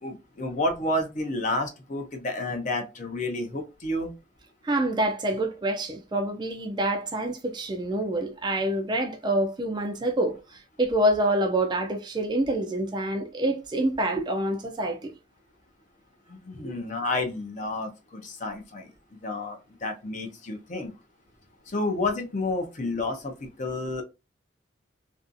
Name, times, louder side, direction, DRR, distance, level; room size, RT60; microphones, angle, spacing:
voice 1, 0.0-4.1 16.3-18.9 19.2-20.9 21.7-24.0, left 2 dB, 40° left, 0.5 m, -30 dB
voice 2, 4.6-15.1, right 1 dB, 20° right, 0.3 m, -27 dB
2.5 x 2.4 x 2.5 m
head